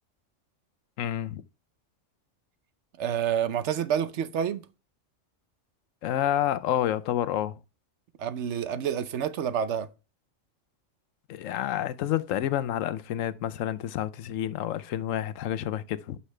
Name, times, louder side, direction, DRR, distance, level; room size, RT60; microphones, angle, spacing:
voice 1, 1.0-1.4 6.0-7.6 11.3-16.2, left 11 dB, 90° left, 1.0 m, -29 dB
voice 2, 3.0-4.6 8.2-9.9, right 8 dB, 70° right, 1.0 m, -28 dB
11.5 x 5.6 x 3.3 m
omnidirectional pair, 1.3 m